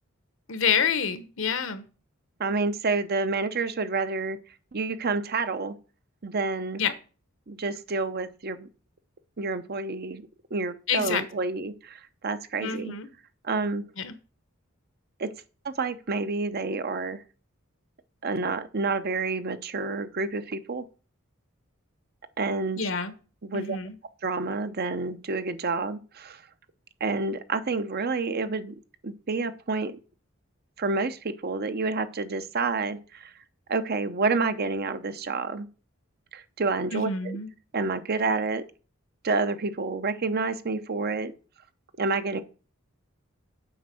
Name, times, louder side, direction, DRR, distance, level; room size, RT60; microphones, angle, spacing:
voice 1, 0.5-1.9 6.8-6.9 10.9-11.2 12.6-13.1 14.0-14.1 22.8-23.1 23.5-24.0 36.9-37.5, left 6 dB, 65° left, 12 dB, 1.1 m, -27 dB
voice 2, 2.4-4.4 4.7-5.8 6.2-6.8 7.5-8.7 9.4-10.2 10.5-12.9 13.4-13.9 15.2-15.3 15.6-17.2 18.2-20.8 22.4-22.8 23.5-23.8 24.2-26.4 27.0-28.8 29.0-30.0 30.8-33.3 33.7-35.7 36.3-37.4 37.7-38.6 39.2-41.3 42.0-42.4, right 3 dB, 50° right, 11 dB, 0.8 m, -29 dB
7.9 x 5.2 x 7.6 m, 0.37 s
head